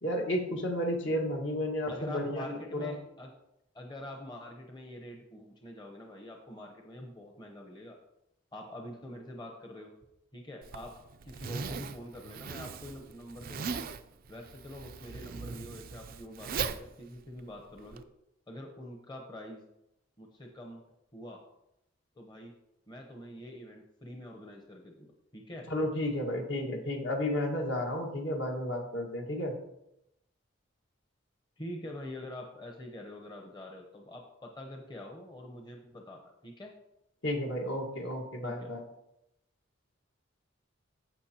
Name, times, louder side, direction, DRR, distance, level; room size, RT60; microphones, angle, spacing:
voice 1, 0.0-2.9 25.7-29.5 37.2-38.9, left 1 dB, 65° left, 1 dB, 1.7 m, -32 dB
voice 2, 1.9-3.3 3.7-8.0 8.5-9.9 10.3-10.9 11.2-13.9 14.3-18.1 18.5-19.6 20.2-20.8 21.1-21.4 22.1-22.5 22.9-25.7 31.6-36.7 38.4-38.8, left 1 dB, 20° left, 1 dB, 0.9 m, -45 dB
Zipper (clothing), 10.6-18.0, right 5 dB, 45° right, 0.4 m, -39 dB
15.0 x 5.5 x 2.9 m, 0.83 s
head